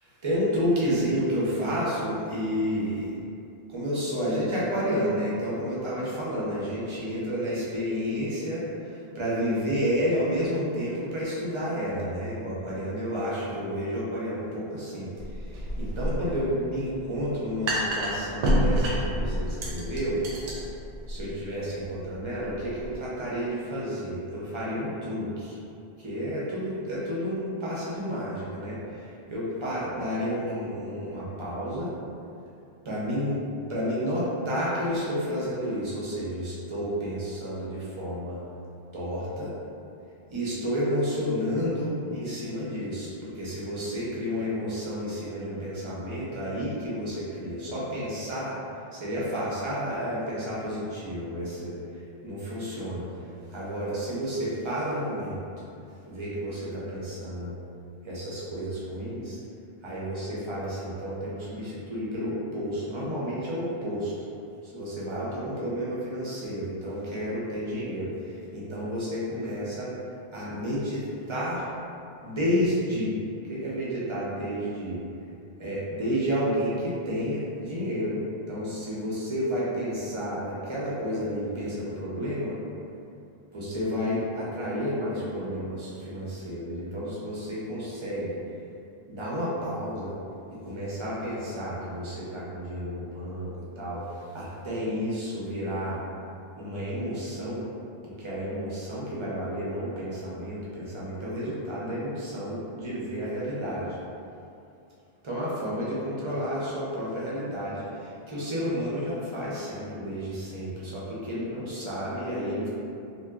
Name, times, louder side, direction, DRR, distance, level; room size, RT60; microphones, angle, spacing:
voice 1, 0.2-3.1 3.7-20.2 21.1-25.6 26.0-31.9 32.8-33.4 33.7-38.4 38.9-39.5 40.3-48.6 48.9-51.8 52.2-53.1 53.5-55.4 56.1-57.5 58.0-59.4 59.8-64.1 64.6-69.9 70.3-71.0 71.3-71.7 72.2-73.1 73.5-75.0 75.6-82.6 83.5-88.4 89.1-90.1 90.5-96.0 96.6-97.7 98.0-104.0 105.2-112.7, equal, 35° right, -8 dB, 0.6 m, -31 dB
sound 1, 15.2-22.9, right 1 dB, 90° right, 0.9 m, -29 dB
3.3 x 2.5 x 2.4 m, 2.6 s
omnidirectional pair, 1.2 m